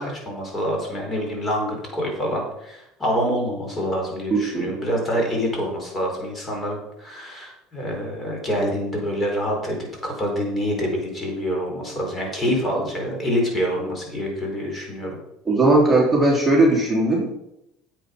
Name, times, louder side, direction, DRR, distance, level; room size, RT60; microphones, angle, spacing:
voice 1, 0.0-15.2, equal, 25° left, 1 dB, 4.4 m, -26 dB
voice 2, 15.5-17.3, right 2 dB, 10° right, -4 dB, 3.4 m, -18 dB
9.4 x 8.0 x 5.3 m, 0.83 s
supercardioid pair, 110°, 0 cm